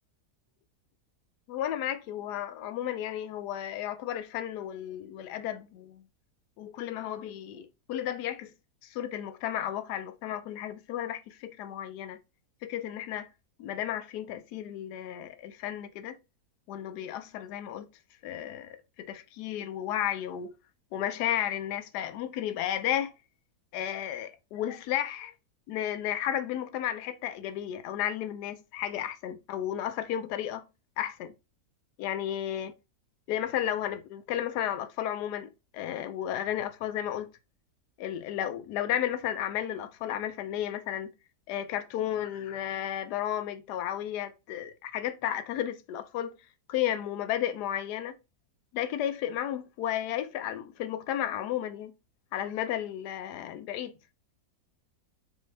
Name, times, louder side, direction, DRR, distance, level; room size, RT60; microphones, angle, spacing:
voice 1, 1.5-6.0 6.6-8.5 8.8-12.2 12.6-13.3 13.6-16.2 16.7-17.9 18.2-20.5 20.9-23.1 23.7-25.3 25.7-30.6 31.0-31.3 32.0-32.7 33.3-37.3 38.0-41.1 41.5-46.3 46.7-48.2 48.7-51.9 52.3-53.9, left 11 dB, 80° left, 1.1 m, -33 dB
4.9 x 2.7 x 3.3 m
omnidirectional pair, 1.8 m